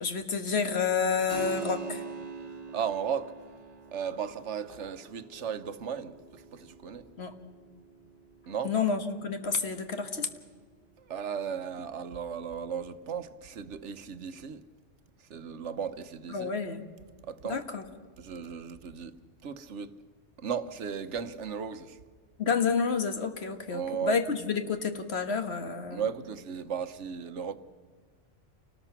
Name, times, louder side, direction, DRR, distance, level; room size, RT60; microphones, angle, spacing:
voice 1, 0.0-2.0 7.2-7.3 8.6-10.3 16.3-16.9 17.4-17.8 22.4-26.1, left 5 dB, 60° left, 1.6 m, -29 dB
Keyboard (musical), 1.3-11.5, right 5 dB, 55° right, 2.1 m, -45 dB
voice 2, 2.7-3.3 3.9-7.1 8.5-8.7 11.1-14.6 15.3-16.5 17.2-17.6 18.2-19.2 19.4-20.0 20.4-22.0 23.7-24.2 25.9-27.6, right 7 dB, 70° right, 1.2 m, -35 dB
28.5 x 19.0 x 5.8 m
omnidirectional pair, 1.3 m